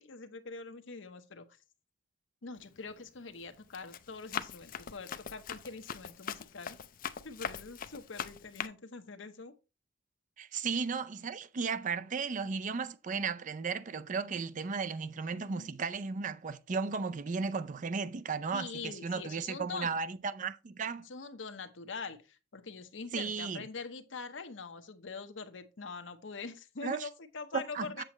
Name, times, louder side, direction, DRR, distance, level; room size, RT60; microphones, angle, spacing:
voice 1, 0.0-1.5 2.4-6.8 7.2-9.5 15.3-15.7 18.5-20.0 21.0-28.0, left 4 dB, 80° left, 0.9 m, -44 dB
Run, 2.6-2.9 3.4-8.7, left 8 dB, 45° left, 0.5 m, -41 dB
voice 2, 10.4-21.1 23.1-23.6 26.8-27.1 27.5-28.0, right 5 dB, 40° right, 0.4 m, -35 dB
7.6 x 7.5 x 3.0 m
head